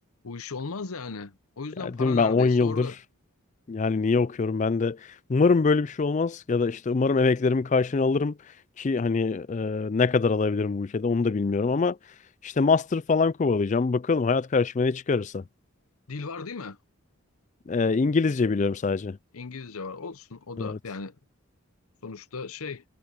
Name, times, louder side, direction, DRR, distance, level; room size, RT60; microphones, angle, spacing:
voice 1, 0.2-3.0 16.1-16.8 19.3-21.2 22.0-22.8, left 4 dB, 80° left, 0.8 m, -37 dB
voice 2, 1.8-2.9 3.7-5.0 5.3-8.3 8.8-12.0 12.4-15.4 17.7-19.2 20.6-20.8, left 4 dB, 35° left, 0.4 m, -24 dB
head